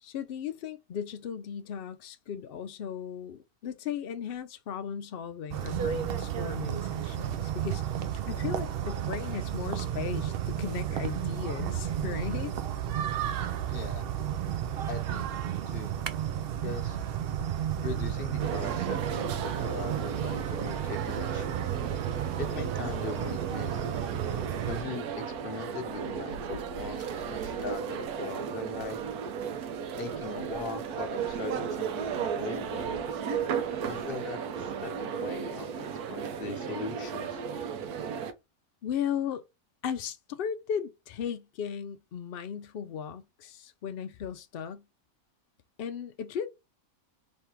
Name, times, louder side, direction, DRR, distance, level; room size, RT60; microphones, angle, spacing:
voice 1, 0.0-7.8 8.3-12.5 38.8-39.4 39.8-44.8 45.8-46.5, left 8 dB, 85° left, 0.5 m, -36 dB
sound 1, 5.5-24.8, right 10 dB, 65° right, 0.6 m, -32 dB
voice 2, 13.7-14.0 14.9-15.9 16.6-17.0 17.8-21.7 22.4-23.9 24.7-29.0 30.0-33.0 33.9-37.4, left 4 dB, 45° left, 0.9 m, -40 dB
sound 2, 18.4-38.3, right 7 dB, 85° right, 1.2 m, -35 dB
3.5 x 3.2 x 4.4 m
omnidirectional pair, 1.6 m